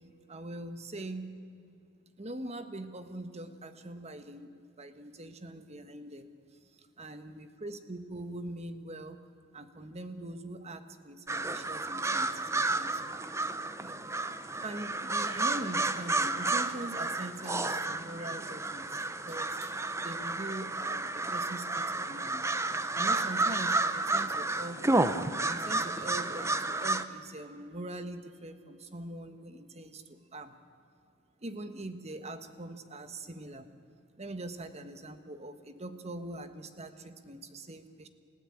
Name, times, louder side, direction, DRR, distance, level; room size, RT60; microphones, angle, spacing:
voice 1, 0.3-1.4 2.2-6.3 7.0-9.2 9.5-13.0 13.8-13.9 14.6-19.7 20.0-22.5 22.9-24.8 25.4-30.5 31.4-33.7 34.2-38.1, right 1 dB, 30° right, 9 dB, 1.4 m, -42 dB
sound 1, 11.3-27.0, right 2 dB, 15° right, 0.8 m, -31 dB
29.5 x 15.5 x 8.7 m, 2.6 s
head